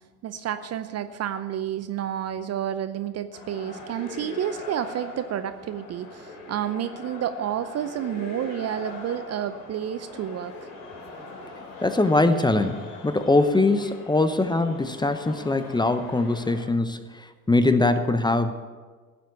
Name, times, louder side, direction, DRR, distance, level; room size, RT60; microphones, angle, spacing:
voice 1, 0.2-10.7, right 10 dB, 35° right, 11 dB, 0.7 m, -30 dB
sound 1, 3.3-16.7, left 3 dB, 60° left, 3.3 m, -41 dB
voice 2, 11.8-18.5, left 2 dB, 10° left, 10 dB, 0.8 m, -22 dB
16.0 x 7.6 x 7.0 m, 1.4 s
hypercardioid pair, 70°, 45 cm